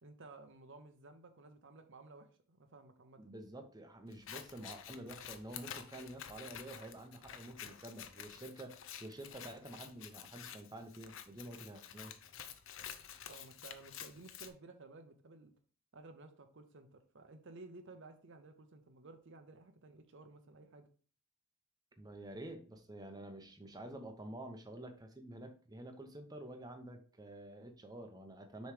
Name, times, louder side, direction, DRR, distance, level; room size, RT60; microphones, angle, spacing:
voice 1, 0.0-3.2 13.3-15.5 15.9-20.9, right 3 dB, 65° right, 7 dB, 0.8 m, -55 dB
voice 2, 3.2-12.1 22.0-28.7, right 1 dB, 20° right, 5 dB, 0.8 m, -49 dB
Scissors, 4.1-14.5, left 9 dB, 70° left, 0.6 m, -50 dB
6.5 x 3.2 x 4.9 m, 0.40 s
head